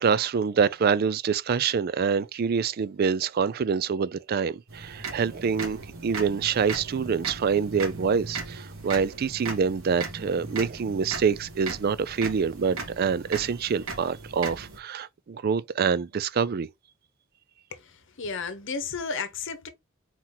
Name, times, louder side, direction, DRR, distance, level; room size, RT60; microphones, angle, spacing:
voice 1, 0.0-16.7, right 6 dB, 45° right, 0.3 m, -26 dB
sound 1, 4.7-14.8, right 4 dB, 80° right, 1.8 m, -38 dB
voice 2, 18.2-19.7, left 5 dB, 60° left, 0.9 m, -32 dB
4.4 x 2.9 x 3.8 m
head